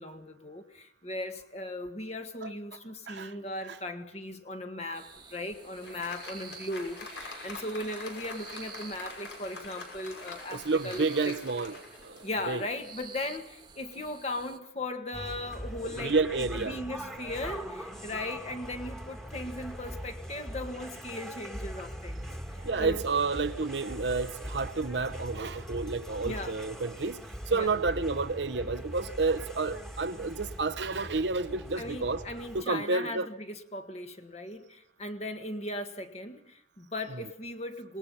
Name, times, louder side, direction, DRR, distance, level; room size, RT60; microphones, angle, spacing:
voice 1, 0.0-11.3 12.2-22.3 22.6-23.0 26.2-26.6 27.5-27.7 31.7-38.0, left 1 dB, 35° left, 1.7 m, -38 dB
sound 1, 4.9-14.6, right 6 dB, 25° right, 1.4 m, -50 dB
Applause, 5.2-12.8, left 2 dB, 80° left, 6.0 m, -45 dB
voice 2, 10.5-12.2 12.5-12.6 15.8-16.8 22.6-27.2 27.5-32.2 32.5-33.3, right 3 dB, 75° right, 0.8 m, -30 dB
sound 2, 15.1-32.6, equal, ahead, 1.8 m, -41 dB
26.5 x 19.5 x 5.7 m
head